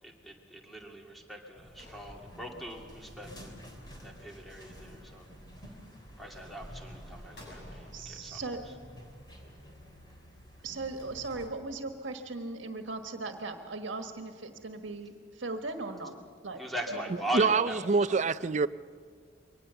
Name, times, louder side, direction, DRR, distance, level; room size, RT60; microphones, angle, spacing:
voice 1, 0.0-3.6 4.0-5.3 5.6-5.7 6.2-8.7 16.6-18.5, equal, ahead, 2.5 m, -40 dB
sound 1, 1.6-11.5, equal, 20° left, 3.4 m, -50 dB
sound 2, 1.8-3.2 7.3-8.9, left 1 dB, 60° left, 7.3 m, -55 dB
voice 2, 7.9-8.6 10.6-16.1 16.4-16.6 16.9-17.2, right 3 dB, 75° right, 1.5 m, -38 dB
voice 3, 17.3-18.7, right 4 dB, 40° right, 0.4 m, -25 dB
23.5 x 19.0 x 6.9 m
head